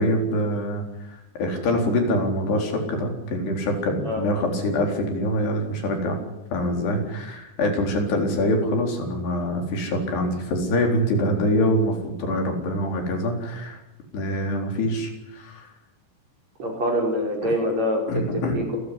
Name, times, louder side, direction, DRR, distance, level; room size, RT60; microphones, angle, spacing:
voice 1, 0.0-6.2 6.5-13.8 14.1-15.7 18.1-18.6, left 1 dB, 75° left, 3 dB, 6.2 m, -25 dB
voice 2, 4.0-4.6 16.6-18.8, equal, 40° right, 1 dB, 6.3 m, -26 dB
28.0 x 15.0 x 10.0 m, 0.96 s
omnidirectional pair, 4.8 m